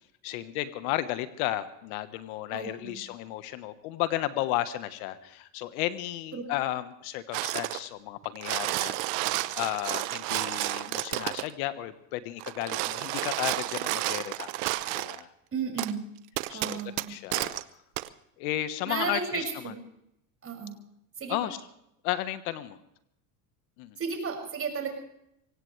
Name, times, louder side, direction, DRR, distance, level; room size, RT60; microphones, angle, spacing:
voice 1, 0.2-14.5 14.9-15.3 16.5-16.8 17.1-17.6 18.4-19.7 21.3-21.6 22.0-22.8 23.8-24.0, left 14 dB, 75° left, 12 dB, 1.4 m, -33 dB
voice 2, 2.5-3.0 6.3-6.4 15.5-16.0 16.5-17.1 18.9-19.7 20.4-20.7 21.2-21.5 24.0-24.9, right 5 dB, 30° right, 2 dB, 6.2 m, -33 dB
sound 1, 7.3-7.9 8.2-11.5 12.4-15.2 15.8-15.9 16.4-17.6 18.0-18.1, right 19 dB, 70° right, 1.0 m, -31 dB
24.0 x 17.5 x 3.3 m, 0.77 s
supercardioid pair, 105°, 43 cm